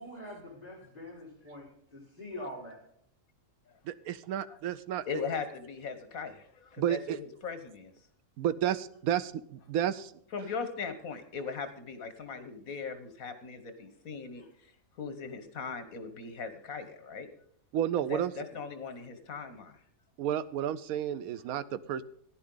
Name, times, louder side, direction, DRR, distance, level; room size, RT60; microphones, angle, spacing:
voice 1, 0.0-2.8 14.4-14.5, left 1 dB, 25° left, -3 dB, 4.8 m, -44 dB
voice 2, 3.9-5.0 6.8-7.2 8.4-10.1 17.7-18.3 20.2-22.0, right 10 dB, 90° right, 12 dB, 1.1 m, -31 dB
voice 3, 5.1-7.9 10.3-14.4 15.0-17.3 18.1-19.8, left 5 dB, 75° left, 9 dB, 1.6 m, -39 dB
15.0 x 11.0 x 3.8 m, 0.65 s
omnidirectional pair, 1.5 m